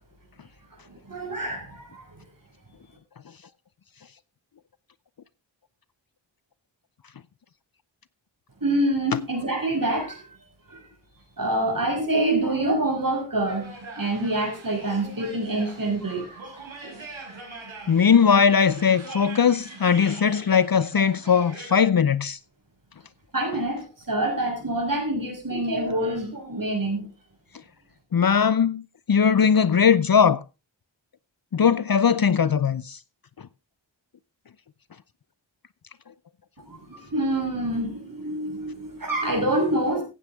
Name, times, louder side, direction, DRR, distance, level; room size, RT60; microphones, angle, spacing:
voice 1, 0.8-2.2 8.6-10.3 10.7-10.8 11.4-17.5 17.9-18.0 23.3-27.1 36.6-40.0, right 1 dB, 45° right, 6.4 m, -27 dB
sound 1, 13.5-21.7, right 3 dB, 85° right, 5.7 m, -42 dB
voice 2, 17.9-22.4 28.1-28.8 29.1-30.4 31.5-33.0, left 7 dB, 50° left, 0.7 m, -19 dB
16.0 x 9.0 x 3.6 m
cardioid pair, 50°, 46 cm